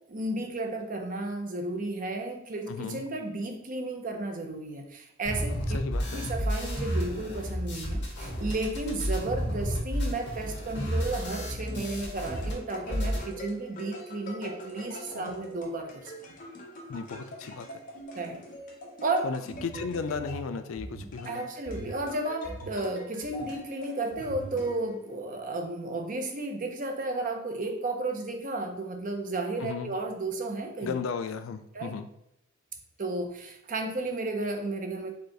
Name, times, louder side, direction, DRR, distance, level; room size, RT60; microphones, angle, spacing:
voice 1, 0.1-5.8 6.1-16.1 18.1-18.4 19.0-19.3 21.3-30.9 31.7-32.0 33.0-35.1, right 2 dB, 40° right, 3 dB, 0.7 m, -33 dB
voice 2, 2.7-3.0 5.7-6.3 15.1-15.3 16.9-17.7 19.2-21.5 29.6-29.9 30.8-32.1, left 5 dB, 80° left, 9 dB, 0.4 m, -35 dB
sound 1, 5.2-12.5 12.8-13.2, equal, 60° left, 1.8 m, -31 dB
sound 2, 11.6-25.2, equal, 40° left, 1.2 m, -43 dB
5.1 x 2.4 x 4.5 m, 0.80 s
head